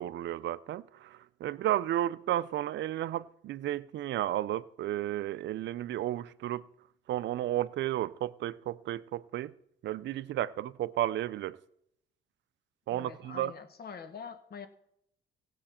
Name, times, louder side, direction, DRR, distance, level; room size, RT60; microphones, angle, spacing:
voice 1, 0.0-6.7 7.1-9.5 9.8-11.6 12.9-13.5, right 13 dB, 65° right, 0.5 m, -33 dB
voice 2, 12.9-14.7, left 6 dB, 50° left, 1.2 m, -45 dB
16.5 x 7.7 x 4.3 m
cardioid pair, 90°, 20 cm